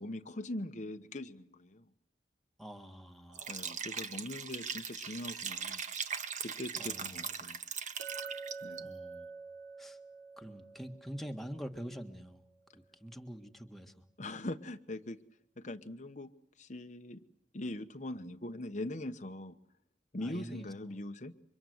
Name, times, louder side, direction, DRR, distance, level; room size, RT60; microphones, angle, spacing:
voice 1, 0.0-1.9 3.5-5.8 6.4-7.6 8.6-8.9 14.2-15.2 15.6-16.3 16.6-17.2 17.5-19.6 20.1-21.3, left 1 dB, 40° left, 6 dB, 1.1 m, -41 dB
voice 2, 2.6-3.5 6.8-7.3 8.8-9.3 9.8-10.0 10.4-12.4 13.0-14.0 20.2-20.7, equal, ahead, 3 dB, 1.7 m, -45 dB
Liquid, 3.3-8.8, right 6 dB, 40° right, 1.6 m, -40 dB
Chink clink, 8.0-12.2, right 5 dB, 75° right, 3.4 m, -47 dB
29.5 x 25.5 x 7.9 m, 0.70 s
head